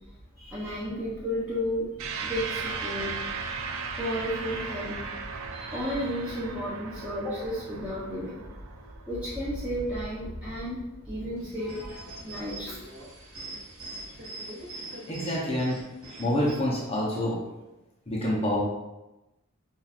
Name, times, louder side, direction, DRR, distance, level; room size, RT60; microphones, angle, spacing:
voice 1, 0.4-3.2 3.9-5.0 5.5-8.4 9.1-12.8, equal, 5° right, -11 dB, 0.8 m, -33 dB
sound 1, 2.0-10.7, right 5 dB, 70° right, 0.5 m, -37 dB
sound 2, 11.4-16.6, right 2 dB, 85° right, 1.2 m, -42 dB
voice 2, 15.1-15.8 16.2-17.4 18.1-18.6, left 1 dB, 30° left, -5 dB, 0.8 m, -27 dB
5.6 x 2.6 x 2.4 m, 0.99 s
head